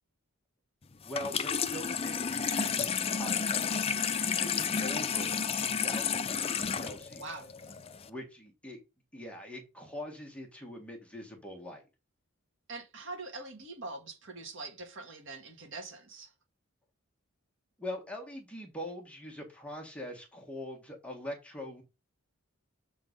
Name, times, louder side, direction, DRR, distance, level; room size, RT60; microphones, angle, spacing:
Water tap faucet / Sink (filling or washing), 1.0-8.1, left 6 dB, 25° left, 0.5 m, -31 dB
voice 1, 1.0-7.3 8.0-8.8 9.1-11.8 17.8-21.8, left 1 dB, 5° left, 1.5 m, -43 dB
voice 2, 7.2-7.8 12.7-16.3, right 3 dB, 55° right, 1.9 m, -43 dB
7.7 x 3.8 x 5.2 m
head